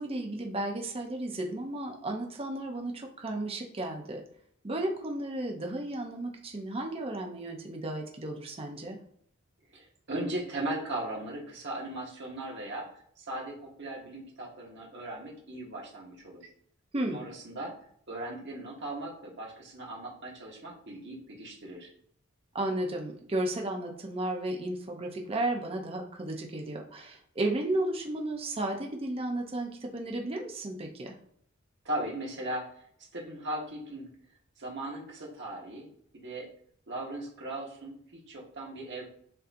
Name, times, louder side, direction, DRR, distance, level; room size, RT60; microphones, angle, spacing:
voice 1, 0.0-4.2 4.6-9.0 16.9-17.3 22.5-31.2, right 1 dB, 30° right, 2 dB, 0.6 m, -33 dB
voice 2, 9.7-12.9 13.2-16.5 17.1-17.8 18.1-21.9 31.8-32.8 33.1-34.1 34.6-36.5 36.9-39.1, right 1 dB, 60° right, -2 dB, 1.3 m, -38 dB
6.5 x 2.7 x 2.6 m, 0.66 s
head